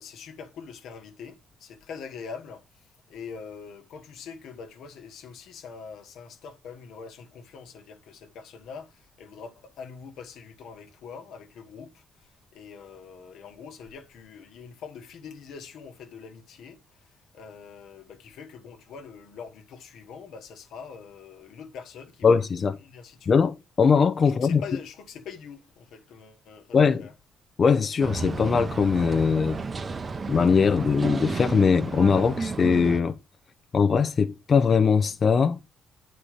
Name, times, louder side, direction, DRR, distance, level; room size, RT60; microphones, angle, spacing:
voice 1, 0.0-23.4 24.2-27.1, left 6 dB, 80° left, 1.1 m, -44 dB
voice 2, 22.2-22.8 23.3-24.6 26.7-27.0 27.6-29.6 30.3-33.1 33.7-35.6, left 5 dB, 45° left, 0.5 m, -21 dB
sound 1, 28.0-33.0, right 4 dB, 35° right, 0.7 m, -32 dB
8.7 x 4.3 x 4.9 m
cardioid pair, 90°, 0 cm